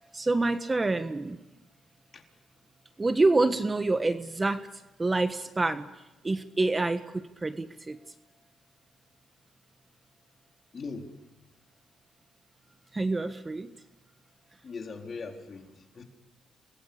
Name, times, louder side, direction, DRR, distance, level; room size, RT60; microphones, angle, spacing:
voice 1, 0.1-1.4 3.0-4.7 5.0-5.9 6.2-8.0 12.9-13.7, right 2 dB, 20° right, 9 dB, 1.3 m, -27 dB
voice 2, 10.7-11.1 14.6-16.0, left 4 dB, 45° left, 2 dB, 4.2 m, -40 dB
29.0 x 21.5 x 7.1 m, 1.0 s
cardioid pair, 90°, 0 cm